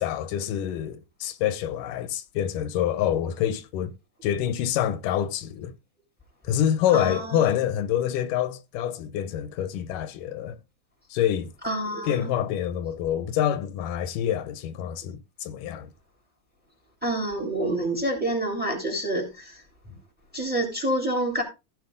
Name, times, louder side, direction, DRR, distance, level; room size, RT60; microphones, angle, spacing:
voice 1, 0.0-3.9 4.2-5.7 6.4-10.6 11.1-11.5 12.0-15.9, left 10 dB, 90° left, 2.5 m, -26 dB
voice 2, 6.9-7.4 11.6-12.3 17.0-19.5 19.9-20.0 20.3-21.4, right 1 dB, 5° right, 3.0 m, -27 dB
15.0 x 6.1 x 3.9 m
omnidirectional pair, 3.7 m